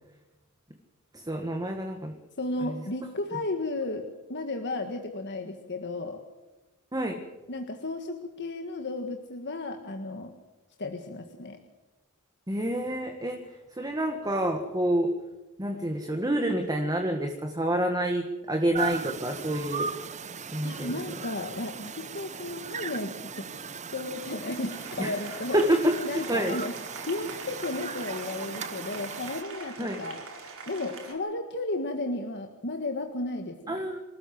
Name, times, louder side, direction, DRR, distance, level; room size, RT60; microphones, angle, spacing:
voice 1, 1.1-2.1 2.6-2.8 6.9-7.2 12.5-13.4 13.7-15.1 15.6-19.9 20.5-21.0 25.0-25.1 25.5-26.6 29.8-30.0 33.7-34.0, right 1 dB, 15° right, 4 dB, 1.7 m, -28 dB
voice 2, 2.4-4.0 4.3-6.2 7.5-10.3 10.8-11.6 20.6-23.5 23.9-25.6 26.0-26.7 27.1-30.2 30.7-33.9, left 2 dB, 55° left, 5 dB, 1.7 m, -34 dB
sound 1, 18.7-29.4, right 6 dB, 35° right, 0.9 m, -38 dB
Applause, 22.0-31.1, right 4 dB, 65° right, 4.6 m, -44 dB
26.0 x 14.0 x 7.8 m, 1.1 s
head